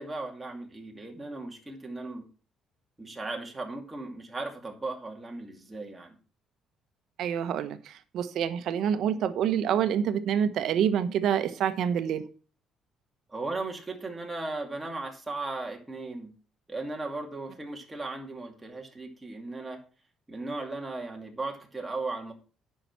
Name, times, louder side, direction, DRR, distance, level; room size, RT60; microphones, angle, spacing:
voice 1, 0.0-2.2 3.0-6.2 13.3-16.3 16.7-19.8 20.3-22.3, right 2 dB, 15° right, 2.4 m, -36 dB
voice 2, 7.2-12.2, right 8 dB, 70° right, 1.1 m, -27 dB
9.8 x 5.8 x 6.0 m
cardioid pair, 110°, 0 cm